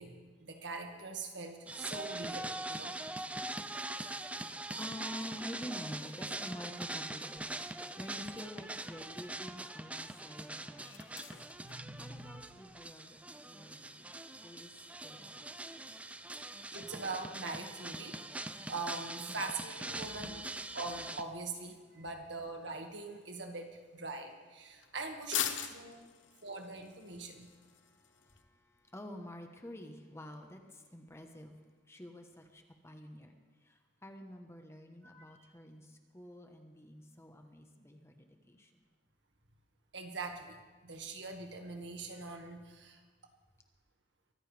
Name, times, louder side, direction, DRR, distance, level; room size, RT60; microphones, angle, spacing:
voice 1, 0.0-3.0 10.6-10.7 11.0-11.1 11.6-12.4 16.4-18.2 18.7-20.5 20.7-26.1 26.4-27.5 35.0-35.4 39.9-43.0, right 3 dB, 65° right, 3 dB, 1.9 m, -43 dB
sound 1, 1.7-21.2, right 2 dB, 5° right, 0.4 m, -43 dB
voice 2, 4.8-7.4 7.7-11.2 12.0-14.1 14.4-14.7 15.0-15.5 19.3-19.4 20.1-20.4 25.9-26.4 27.2-31.6 31.9-33.4 33.6-38.7, left 1 dB, 15° left, 5 dB, 1.1 m, -49 dB
sound 2, 8.8-28.4, left 9 dB, 80° left, 1.0 m, -48 dB
23.5 x 14.5 x 3.4 m, 1.3 s
head